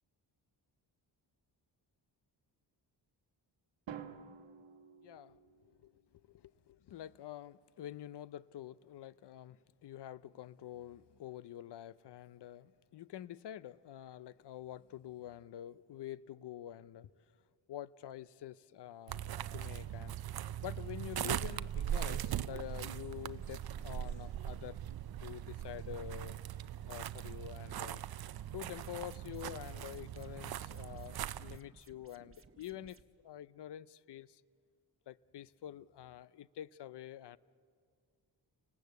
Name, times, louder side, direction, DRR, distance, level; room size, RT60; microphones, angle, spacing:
Drum, 3.9-5.9, right 8 dB, 80° right, 1.3 m, -50 dB
voice 1, 5.0-17.1 17.7-24.8 25.2-26.4 26.9-28.0 28.5-33.0 33.2-34.4 35.1-37.4, left 12 dB, 65° left, 0.7 m, -47 dB
sound 1, 19.1-31.6, right 11 dB, 55° right, 0.6 m, -40 dB
sound 2, 28.6-33.0, right 4 dB, 30° right, 1.2 m, -61 dB
30.0 x 19.0 x 8.2 m
cardioid pair, 90°, 44 cm